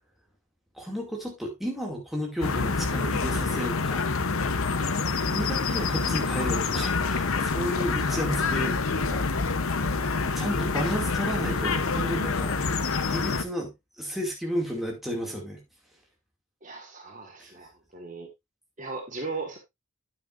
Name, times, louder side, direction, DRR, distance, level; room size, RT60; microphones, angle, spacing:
voice 1, 0.7-4.0 5.2-9.7 10.3-12.6 13.1-15.6 17.4-17.5, equal, ahead, 2.4 m, -33 dB
sound 1, 2.4-13.4, left 4 dB, 75° left, 0.8 m, -27 dB
voice 2, 16.6-18.3 18.8-19.6, right 4 dB, 35° right, 1.6 m, -37 dB
9.4 x 8.7 x 2.5 m
head